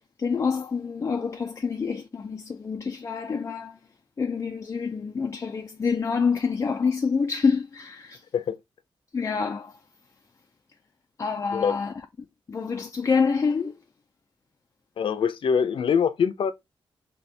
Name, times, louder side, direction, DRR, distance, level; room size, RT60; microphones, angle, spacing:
voice 1, 0.2-3.8 4.2-8.2 9.1-9.7 11.2-11.9 12.5-13.8, left 5 dB, 35° left, 0.5 m, -27 dB
voice 2, 15.0-16.5, left 7 dB, 70° left, 0.7 m, -24 dB
4.4 x 3.0 x 3.3 m
wide cardioid pair, 120°, 9 cm